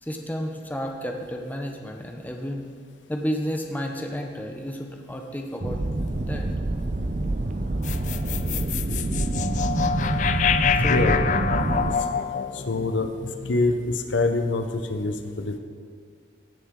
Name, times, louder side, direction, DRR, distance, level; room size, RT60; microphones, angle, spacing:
voice 1, 0.0-2.7 3.1-5.8 6.2-6.5 10.8-11.3, equal, 10° left, 2 dB, 0.8 m, -31 dB
sound 1, 5.6-11.9, right 2 dB, 40° right, 0.6 m, -26 dB
sound 2, 7.8-14.2, left 7 dB, 40° left, 0.3 m, -27 dB
voice 2, 10.8-11.2 12.7-13.1 13.5-15.6, left 2 dB, 90° left, 7 dB, 0.8 m, -25 dB
16.5 x 7.1 x 3.7 m, 2.2 s
head